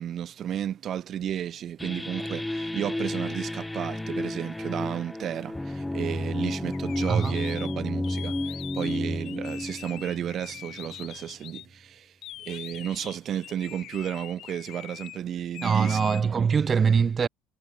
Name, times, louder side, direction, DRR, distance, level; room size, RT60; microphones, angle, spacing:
voice 1, 0.0-12.1 12.4-16.5, right 10 dB, 50° right, 2.6 m, -33 dB
sound 1, 1.8-11.1, left 1 dB, 10° left, 5.0 m, -32 dB
sound 2, 6.7-11.7 12.2-15.2 15.5-16.2, left 13 dB, 60° left, 3.8 m, -43 dB
voice 2, 15.6-17.3, right 6 dB, 30° right, 2.0 m, -23 dB
supercardioid pair, 105°, 0 cm